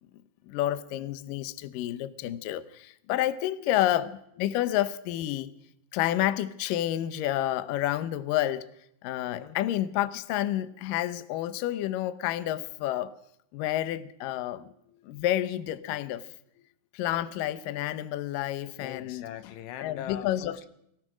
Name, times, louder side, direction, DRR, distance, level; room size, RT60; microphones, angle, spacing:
voice 1, 0.5-5.5 5.9-8.6 9.0-13.1 13.5-14.7 15.0-16.2 16.9-19.2 19.8-20.7, left 13 dB, 70° left, 13 dB, 2.2 m, -29 dB
voice 2, 3.6-3.9 9.3-9.6 14.5-15.2 18.8-20.7, left 10 dB, 90° left, 12 dB, 3.2 m, -43 dB
24.0 x 17.5 x 6.2 m, 0.76 s
omnidirectional pair, 4.8 m